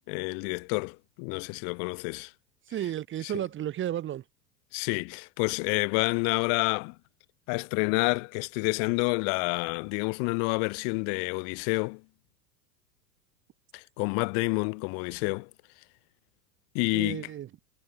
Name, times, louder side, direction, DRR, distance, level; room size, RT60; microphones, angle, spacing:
voice 1, 0.1-2.3 3.2-3.3 4.7-6.9 7.5-12.0 13.7-15.5 16.7-17.3, left 40 dB or more, 45° left, 1.4 m, -29 dB
voice 2, 2.7-4.2 16.9-17.5, right 11 dB, 25° right, 1.1 m, -33 dB
figure-of-eight pair, 90°, 49 cm